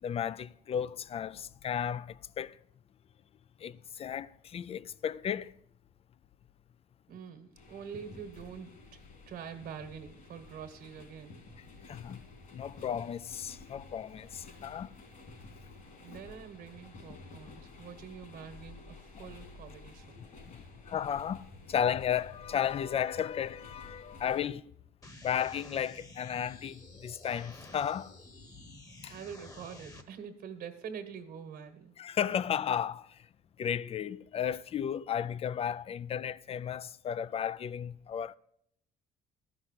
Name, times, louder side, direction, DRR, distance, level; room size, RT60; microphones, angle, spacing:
voice 1, 0.0-2.6 3.6-5.5 11.8-12.2 12.5-14.9 15.6-15.7 20.2-24.7 25.2-28.2 29.0-29.1 32.0-33.3 33.6-38.4, left 9 dB, 35° left, 0.4 m, -34 dB
voice 2, 7.1-11.4 16.0-20.2 29.1-31.9, right 7 dB, 70° right, 1.5 m, -45 dB
sound 1, 7.5-24.5, left 3 dB, 50° left, 2.8 m, -52 dB
sound 2, 25.0-30.0, left 2 dB, 20° left, 1.2 m, -51 dB
13.0 x 6.0 x 8.1 m
cardioid pair, 110°, 17 cm